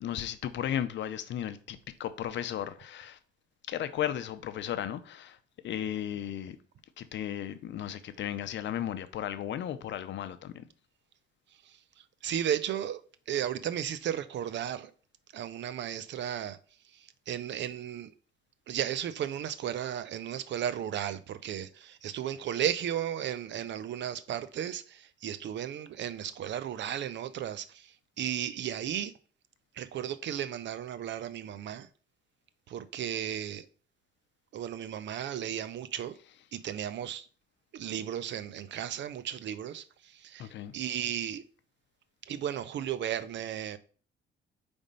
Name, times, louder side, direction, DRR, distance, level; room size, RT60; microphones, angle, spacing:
voice 1, 0.0-3.2 3.7-5.4 5.6-6.6 7.0-10.6 40.4-40.7, left 10 dB, 70° left, 0.6 m, -35 dB
voice 2, 12.2-13.0 13.3-14.9 15.3-16.6 17.3-18.1 18.7-29.1 29.8-31.9 32.7-33.6 34.5-36.2 36.5-37.3 37.7-41.4 42.3-43.8, right 10 dB, 65° right, 0.6 m, -34 dB
5.1 x 3.5 x 5.3 m
cardioid pair, 90°, 20 cm